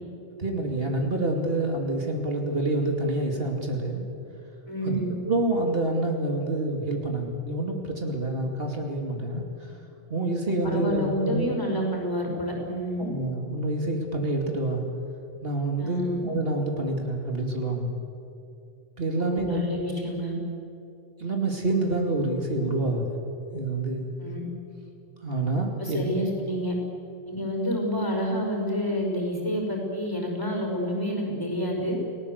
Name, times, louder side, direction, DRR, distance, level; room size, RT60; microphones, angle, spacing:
voice 1, 0.4-4.0 4.8-9.7 10.1-11.5 13.0-14.8 15.4-18.0 19.0-19.6 21.2-23.2 23.5-24.1 25.2-26.2, right 2 dB, 65° right, 2 dB, 2.9 m, -27 dB
voice 2, 4.7-5.1 10.5-13.1 15.8-16.3 19.2-20.3 24.2-24.4 25.8-26.7 27.3-31.9, equal, 20° left, 1 dB, 5.5 m, -29 dB
29.5 x 18.5 x 8.1 m, 2.7 s
omnidirectional pair, 1.1 m